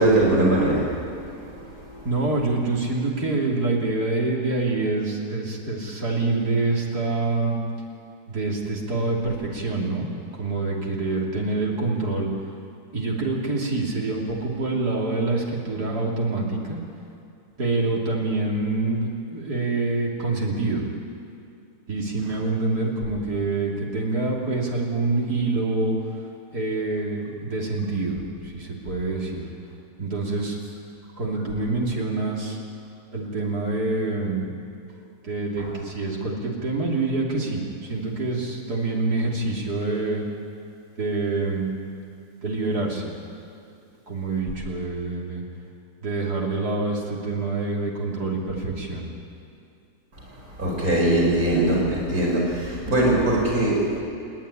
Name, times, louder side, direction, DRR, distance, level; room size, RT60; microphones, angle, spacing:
voice 1, 0.0-2.1 50.2-54.0, right 1 dB, 65° right, -3 dB, 5.4 m, -22 dB
voice 2, 2.0-7.6 8.3-10.1 10.3-12.3 12.9-16.8 17.6-20.8 21.9-26.0 26.5-29.5 30.0-30.6 31.2-32.6 33.1-34.5 35.2-40.2 41.0-41.7 42.4-43.2 44.1-45.4 46.0-49.1, right 3 dB, 80° right, -2 dB, 3.6 m, -26 dB
29.0 x 10.5 x 10.0 m, 2.5 s
omnidirectional pair, 1.7 m